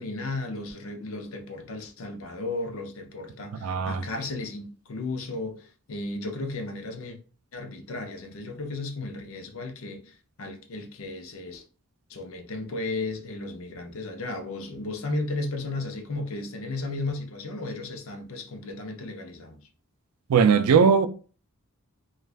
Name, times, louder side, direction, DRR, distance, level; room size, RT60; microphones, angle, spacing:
voice 1, 0.0-7.2 7.5-11.6 12.1-19.6, left 2 dB, 65° left, 0.6 m, -34 dB
voice 2, 3.6-4.0 20.3-21.1, right 6 dB, 85° right, 0.4 m, -19 dB
2.4 x 2.4 x 3.2 m
head